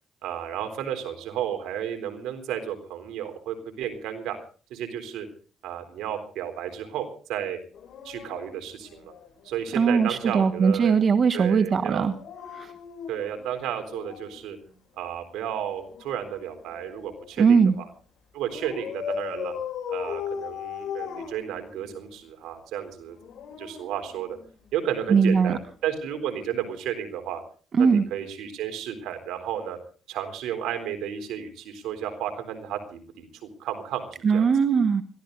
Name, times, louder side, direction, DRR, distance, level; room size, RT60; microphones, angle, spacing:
voice 1, 0.2-4.4 4.7-5.3 5.6-7.6 8.0-9.1 9.4-10.9 11.3-12.1 13.1-14.6 15.0-17.8 18.3-19.5 19.9-23.2 23.6-24.4 24.7-27.4 27.8-29.8 30.1-34.5, right 10 dB, 90° right, 7 dB, 3.8 m, -32 dB
Dog, 7.7-9.6 12.0-14.4 15.7-17.4 18.5-22.1 23.1-24.7 26.0-26.2, left 7 dB, 60° left, 8.0 m, -38 dB
voice 2, 9.7-12.1 12.5-12.7 17.4-17.7 25.1-25.6 27.8-28.0 34.2-35.0, right 5 dB, 50° right, 10 dB, 1.3 m, -20 dB
22.0 x 15.5 x 4.0 m, 0.40 s
cardioid pair, 90°, 0 cm